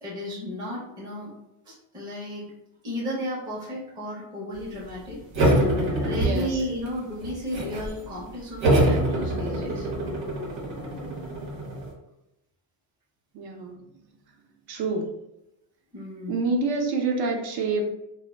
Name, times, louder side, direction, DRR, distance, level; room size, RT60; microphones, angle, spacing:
voice 1, 0.0-1.3 1.6-2.5 2.8-5.2 6.0-9.9 15.9-16.5, equal, 10° right, -7 dB, 0.5 m, -34 dB
sound 1, 5.3-6.9 7.2-7.9 8.6-11.9, right 1 dB, 90° right, 1.0 m, -24 dB
voice 2, 6.2-6.6 13.3-14.0 14.7-15.1 16.3-17.9, right 3 dB, 60° right, 3 dB, 0.6 m, -27 dB
2.1 x 2.1 x 3.3 m, 0.87 s
cardioid pair, 155°, 45 cm